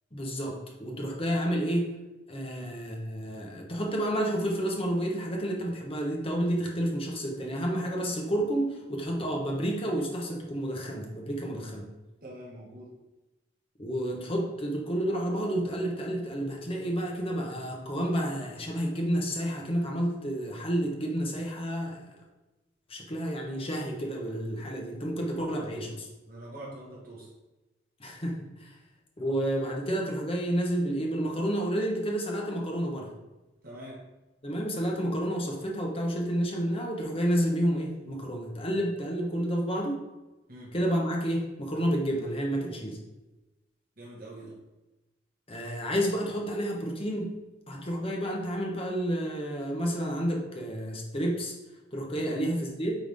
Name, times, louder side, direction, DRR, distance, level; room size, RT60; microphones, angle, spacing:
voice 1, 0.1-1.9 2.3-11.9 13.8-22.1 22.9-25.9 28.0-28.7 29.2-33.1 34.4-40.0 40.7-43.0 45.5-47.3 47.7-51.5 51.9-53.0, equal, 30° left, -1 dB, 1.2 m, -30 dB
voice 2, 12.2-12.9 25.4-26.0 26.3-27.3 33.6-34.0 40.5-40.7 44.0-44.6 52.2-52.4, right 1 dB, 50° right, -5 dB, 1.5 m, -45 dB
9.1 x 3.6 x 3.6 m, 1.1 s
head